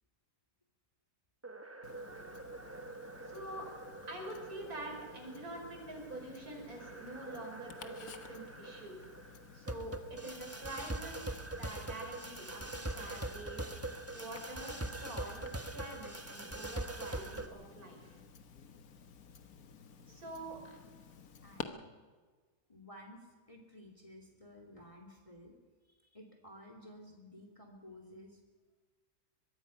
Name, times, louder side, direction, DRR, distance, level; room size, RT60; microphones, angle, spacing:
sound 1, 1.4-17.5, right 2 dB, 10° right, 1.1 m, -44 dB
Tick-tock, 1.8-21.6, left 6 dB, 65° left, 1.7 m, -54 dB
voice 1, 3.3-3.7 4.0-9.0 9.5-11.3 11.6-13.7 14.1-18.2 20.1-20.6, right 1 dB, 65° right, 2 dB, 5.6 m, -46 dB
voice 2, 21.4-21.8 22.7-25.5 25.9-28.4, equal, 20° left, 3 dB, 2.7 m, -54 dB
23.5 x 22.5 x 5.5 m, 1.4 s
omnidirectional pair, 1.7 m